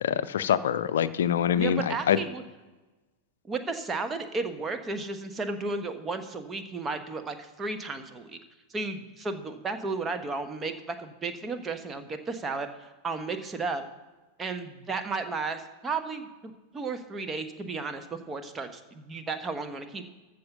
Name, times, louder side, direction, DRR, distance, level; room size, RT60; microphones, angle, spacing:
voice 1, 0.0-2.2, left 9 dB, 60° left, 14 dB, 0.6 m, -25 dB
voice 2, 1.5-2.4 3.4-8.4 8.7-13.8 14.4-20.1, right 3 dB, 20° right, 7 dB, 1.1 m, -34 dB
14.0 x 5.2 x 6.8 m, 1.2 s
figure-of-eight pair, 90°, 0 cm